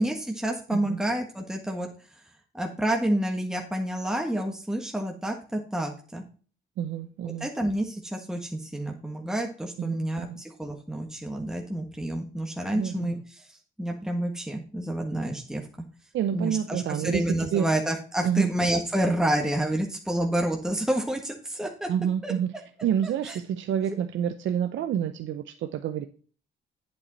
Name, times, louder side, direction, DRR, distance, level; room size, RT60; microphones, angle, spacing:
voice 1, 0.0-1.9 2.5-6.2 7.4-15.6 16.3-21.9 22.2-22.3 23.0-23.4, right 1 dB, 5° right, 1 dB, 1.5 m, -29 dB
voice 2, 6.8-7.5 9.8-10.4 12.7-13.2 16.1-17.7 18.2-18.5 21.9-22.5 22.8-26.1, right 9 dB, 70° right, 9 dB, 0.7 m, -28 dB
8.7 x 7.8 x 4.0 m, 0.40 s
cardioid pair, 90°, 20 cm